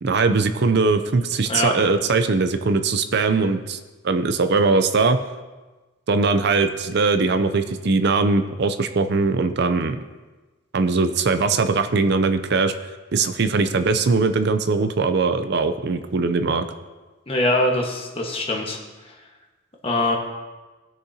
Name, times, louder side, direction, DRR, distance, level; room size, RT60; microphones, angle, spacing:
voice 1, 0.0-3.8 4.0-5.2 6.1-10.0 10.7-12.7 13.1-16.7, right 4 dB, 55° right, 9 dB, 0.5 m, -20 dB
voice 2, 17.3-18.8 19.1-19.2 19.8-20.2, left 1 dB, 25° left, 0 dB, 1.4 m, -22 dB
19.0 x 6.6 x 2.8 m, 1.2 s
head